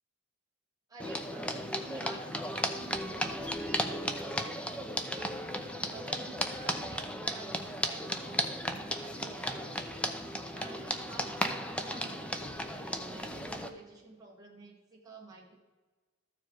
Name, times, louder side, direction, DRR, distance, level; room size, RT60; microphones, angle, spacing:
voice 1, 0.9-10.2 10.4-15.5, right 2 dB, 15° right, -4 dB, 1.3 m, -50 dB
sound 1, 1.0-13.7, equal, 5° left, 0.6 m, -35 dB
14.0 x 4.8 x 4.5 m, 1.3 s
head